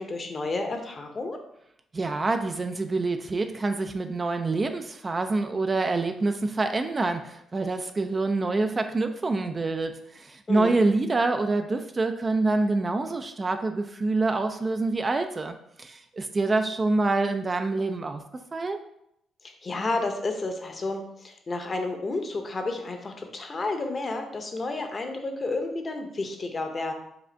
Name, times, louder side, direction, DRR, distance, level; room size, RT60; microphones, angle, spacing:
voice 1, 0.0-1.4 10.5-10.8 19.4-26.9, left 2 dB, 35° left, 5 dB, 0.8 m, -31 dB
voice 2, 1.9-18.2 18.5-18.8, right 3 dB, 30° right, 7 dB, 0.4 m, -26 dB
4.9 x 2.4 x 4.4 m, 0.76 s
cardioid pair, 90°, 0 cm